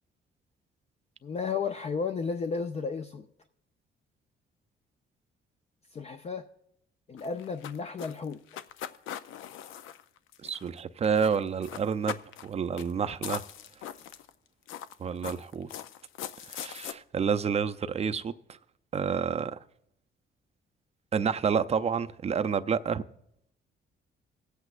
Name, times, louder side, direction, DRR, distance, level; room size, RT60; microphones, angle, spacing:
voice 1, 1.2-3.2 5.9-6.5 7.1-8.4, left 5 dB, 35° left, 0.5 m, -33 dB
sound 1, 7.2-10.8 11.0-11.4 11.6-12.5 12.8-12.9 13.2-14.3 14.7-16.9, left 10 dB, 85° left, 0.5 m, -40 dB
voice 2, 10.4-13.4 15.0-15.7 16.5-18.3 18.9-19.6 21.1-23.0, right 6 dB, 30° right, 0.4 m, -29 dB
22.0 x 8.1 x 2.4 m
cardioid pair, 90°, 20 cm